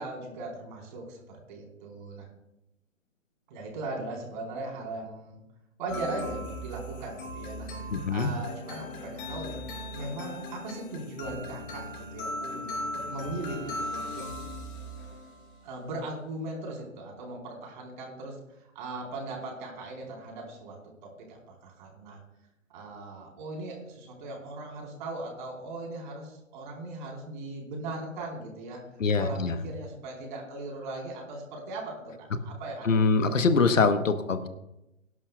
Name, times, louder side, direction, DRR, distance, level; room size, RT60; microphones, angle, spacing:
voice 1, 0.0-2.3 3.5-5.4 5.8-9.6 9.9-14.2 15.6-22.2 22.7-28.8 29.2-33.6, right 2 dB, 35° right, 0 dB, 4.5 m, -39 dB
sound 1, 5.9-15.6, left 1 dB, 40° left, 4.2 m, -38 dB
voice 2, 7.9-8.3 29.0-29.6 32.8-34.5, left 4 dB, 70° left, 9 dB, 1.3 m, -24 dB
23.5 x 11.5 x 2.4 m, 0.89 s
figure-of-eight pair, 135°, 40 cm